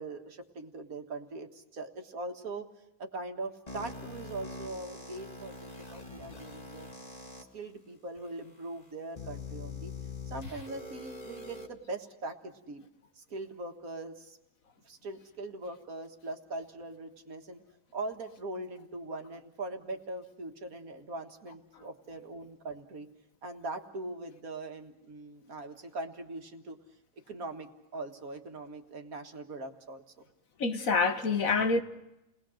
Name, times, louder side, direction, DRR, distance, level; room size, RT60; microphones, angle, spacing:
voice 1, 0.0-2.7 3.0-6.9 7.5-9.9 10.3-12.9 13.2-14.4 14.9-17.6 17.9-23.1 23.4-26.8 27.3-30.2, right 2 dB, 80° right, 2.1 m, -41 dB
sound 1, 3.7-7.4 8.2-8.3 9.2-11.7, left 3 dB, 30° left, 2.0 m, -43 dB
voice 2, 30.6-31.8, left 4 dB, 70° left, 1.7 m, -26 dB
30.0 x 20.0 x 6.4 m
omnidirectional pair, 1.5 m